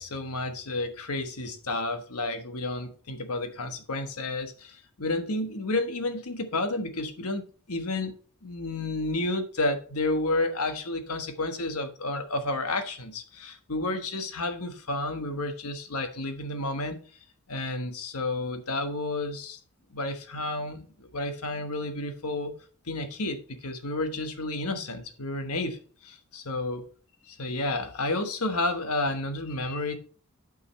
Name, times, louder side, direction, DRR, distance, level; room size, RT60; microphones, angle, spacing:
voice 1, 0.0-8.2 8.4-17.0 17.5-19.6 19.9-22.5 22.9-26.9 27.3-30.0, left 2 dB, 85° left, 1.3 m, -31 dB
8.7 x 5.3 x 4.1 m
head